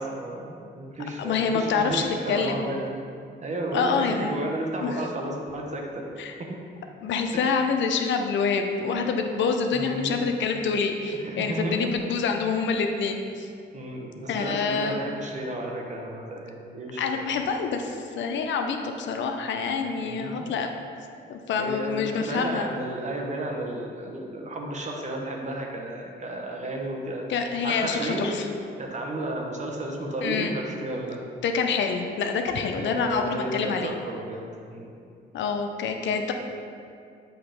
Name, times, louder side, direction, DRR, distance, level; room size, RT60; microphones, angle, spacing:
voice 1, 0.0-2.9 3.4-6.6 7.3-7.5 9.7-10.2 11.1-11.9 13.7-17.3 20.0-20.5 21.6-28.4 28.8-31.2 32.6-34.9, right 1 dB, 35° right, 0 dB, 1.0 m, -33 dB
voice 2, 1.2-2.7 3.7-4.5 4.8-5.0 6.2-6.3 7.0-13.5 14.3-15.0 17.0-20.7 21.3-22.7 27.3-28.5 30.2-30.5 31.4-33.9 35.3-36.3, left 5 dB, 70° left, 5 dB, 0.6 m, -26 dB
7.9 x 2.9 x 5.1 m, 2.4 s
cardioid pair, 90°, 20 cm